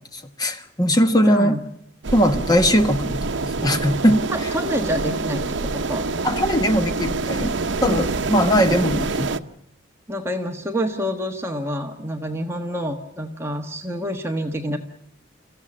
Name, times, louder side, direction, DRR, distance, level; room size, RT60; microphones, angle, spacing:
voice 1, 0.1-1.6 2.1-4.3 6.2-7.6 7.8-9.3, equal, 20° left, 1.3 m, -20 dB
voice 2, 1.2-1.7 4.3-6.1 10.1-14.8, equal, 15° right, 1.3 m, -27 dB
sound 1, 2.0-9.4, right 3 dB, 65° right, 0.8 m, -26 dB
27.5 x 15.0 x 8.7 m
head